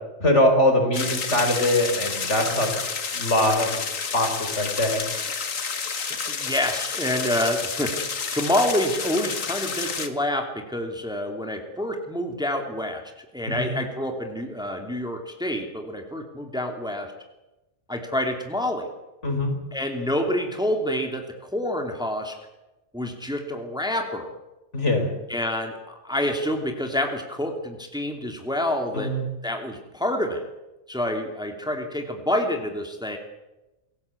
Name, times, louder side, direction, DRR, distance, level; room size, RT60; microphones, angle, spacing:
voice 1, 0.2-2.7 3.1-3.8 4.1-4.3 4.6-5.0 13.5-13.7 19.2-19.5 24.7-25.1 28.9-29.2, left 1 dB, 60° left, 4 dB, 5.1 m, -22 dB
sound 1, 0.9-10.1, left 5 dB, 85° left, 2.1 m, -30 dB
voice 2, 6.3-7.9 8.3-17.1 17.9-18.9 19.7-22.3 22.9-24.3 25.3-29.1 29.4-30.4 30.9-33.2, left 1 dB, 5° right, 4 dB, 2.6 m, -27 dB
27.0 x 17.5 x 8.4 m, 1.0 s
omnidirectional pair, 1.3 m